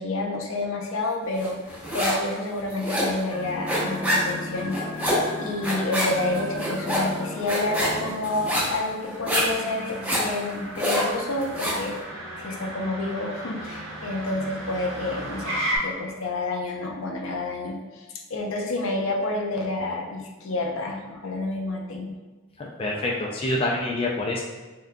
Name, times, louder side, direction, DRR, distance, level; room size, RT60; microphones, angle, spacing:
voice 1, 0.0-11.9 12.4-15.6 15.8-22.2, left 2 dB, 80° left, 0 dB, 0.6 m, -29 dB
sound 1, 1.4-2.3 2.6-11.9, equal, 5° right, 0.8 m, -26 dB
Motor vehicle (road), 2.7-15.8, right 1 dB, 85° right, 1.1 m, -38 dB
sound 2, 3.3-8.5, left 2 dB, 10° left, 1.0 m, -36 dB
voice 2, 22.6-24.4, left 2 dB, 25° left, -2 dB, 0.3 m, -26 dB
3.7 x 3.5 x 2.2 m, 1.2 s
head